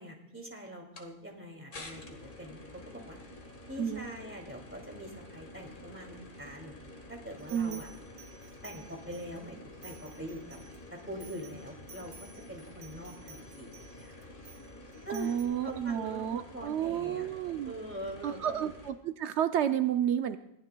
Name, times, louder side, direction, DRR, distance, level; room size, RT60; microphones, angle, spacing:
voice 1, 0.0-3.2 3.7-6.7 7.1-7.9 8.6-10.6 10.9-14.3 15.0-17.3 17.6-18.5, equal, 10° right, 0 dB, 2.4 m, -44 dB
sound 1, 1.0-1.1 1.7-18.9, left 2 dB, 50° left, 1.6 m, -49 dB
sound 2, 7.4-9.4 9.8-15.4, right 4 dB, 60° right, 1.6 m, -54 dB
voice 2, 7.5-7.8 15.1-17.7 18.2-20.4, right 9 dB, 80° right, 8 dB, 0.9 m, -31 dB
21.5 x 15.0 x 2.2 m, 0.81 s
omnidirectional pair, 1.1 m